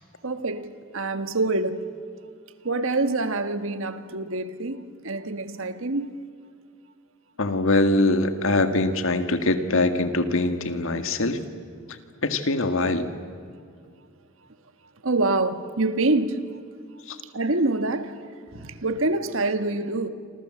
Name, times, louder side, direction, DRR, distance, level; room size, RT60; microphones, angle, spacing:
voice 1, 0.2-1.9 2.6-6.2 15.0-16.5 17.2-20.1, right 2 dB, 65° right, 1.5 m, -26 dB
voice 2, 7.4-11.4 12.2-13.1 17.1-17.2, left 2 dB, 65° left, 2.0 m, -23 dB
27.5 x 26.5 x 7.8 m
head